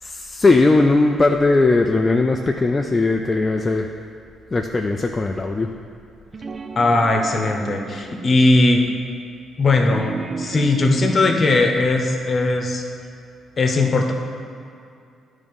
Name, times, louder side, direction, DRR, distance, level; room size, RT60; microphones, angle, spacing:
voice 1, 0.0-3.9 4.5-5.7, left 3 dB, 25° left, 3 dB, 0.4 m, -18 dB
sound 1, 6.3-8.7 9.7-11.5, right 4 dB, 35° right, 0.4 m, -33 dB
voice 2, 6.8-8.8 9.6-12.8 13.6-14.1, left 2 dB, 40° left, 2 dB, 1.0 m, -18 dB
10.0 x 3.7 x 5.3 m, 2.5 s
cardioid pair, 90°, 0 cm